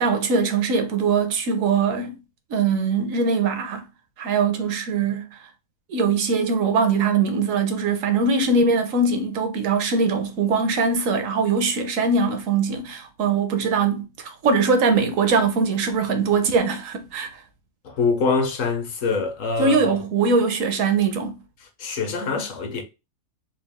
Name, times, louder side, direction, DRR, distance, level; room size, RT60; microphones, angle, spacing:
voice 1, 0.0-2.1 2.5-3.8 4.2-5.4 5.9-17.4 19.6-21.4, right 4 dB, 70° right, 1.1 m, -22 dB
voice 2, 17.8-19.8 21.8-22.8, left 4 dB, 65° left, 1.2 m, -24 dB
4.0 x 2.3 x 3.5 m
omnidirectional pair, 1.5 m